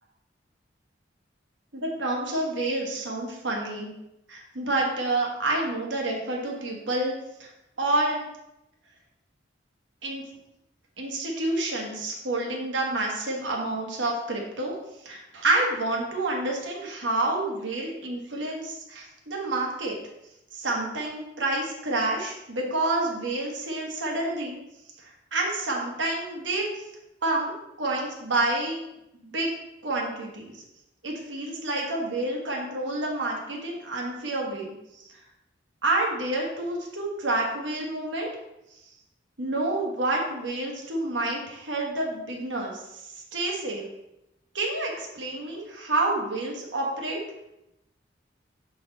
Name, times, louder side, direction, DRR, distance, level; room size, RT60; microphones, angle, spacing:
voice 1, 1.7-3.9 4.3-7.5 7.8-8.2 10.0-10.2 11.0-14.7 15.0-20.0 20.5-24.6 25.3-26.7 27.2-27.5 27.8-28.8 29.2-29.5 29.8-30.6 31.0-35.1 35.8-38.3 39.4-43.8 44.5-47.2, right 2 dB, 80° right, -1 dB, 1.4 m, -28 dB
6.8 x 4.2 x 3.9 m, 0.88 s
head